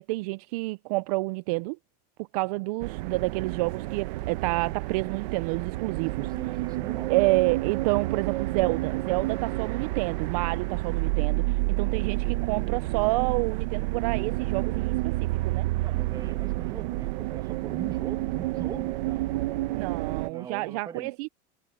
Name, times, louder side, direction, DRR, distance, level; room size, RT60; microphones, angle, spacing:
voice 1, 0.0-1.8 2.3-6.3 7.1-15.7 19.7-21.3, right 23 dB, 65° right, 0.4 m, -29 dB
sound 1, 2.8-20.3, right 19 dB, 80° right, 1.0 m, -29 dB
voice 2, 6.2-7.1 8.3-8.4 15.7-19.6 20.2-21.1, right 7 dB, 20° right, 2.1 m, -42 dB
cardioid pair, 175°, 21 cm